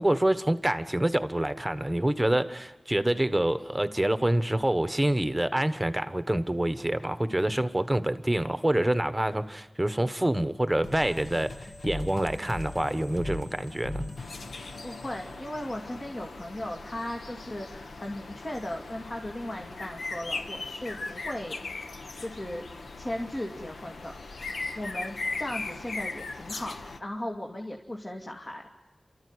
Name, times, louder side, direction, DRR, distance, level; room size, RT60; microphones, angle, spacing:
voice 1, 0.0-11.5 11.8-14.0, right 1 dB, 10° right, 11 dB, 1.2 m, -26 dB
sound 1, 10.8-16.1, left 2 dB, 65° left, 1.7 m, -39 dB
sound 2, 14.2-27.0, left 3 dB, 90° left, 1.2 m, -39 dB
voice 2, 14.8-21.6 22.2-22.6 23.0-24.1 24.4-28.9, left 1 dB, 35° left, 0 dB, 2.5 m, -37 dB
29.5 x 14.0 x 9.8 m, 1.1 s
wide cardioid pair, 75°, 0 cm